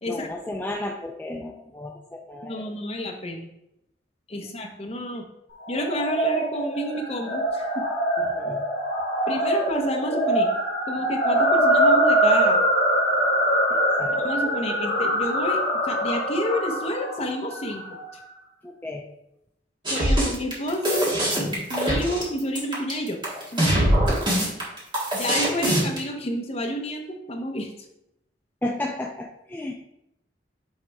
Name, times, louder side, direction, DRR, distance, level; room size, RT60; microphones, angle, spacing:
voice 1, 0.1-2.8 4.4-4.5 8.2-8.6 13.7-14.2 18.6-19.0 24.2-24.4 28.6-29.7, left 1 dB, 10° left, 0 dB, 0.4 m, -33 dB
voice 2, 2.4-3.5 4.3-5.2 5.7-7.9 9.3-10.5 10.9-12.6 14.2-17.8 19.9-21.0 21.7-23.2 23.5-23.9 25.1-27.7, equal, 35° left, 3 dB, 0.8 m, -30 dB
sound 1, 5.6-18.0, right 1 dB, 70° left, 2.1 m, -23 dB
sound 2, 19.9-26.0, right 1 dB, 25° right, 1.7 m, -22 dB
6.4 x 3.4 x 4.7 m, 0.83 s
head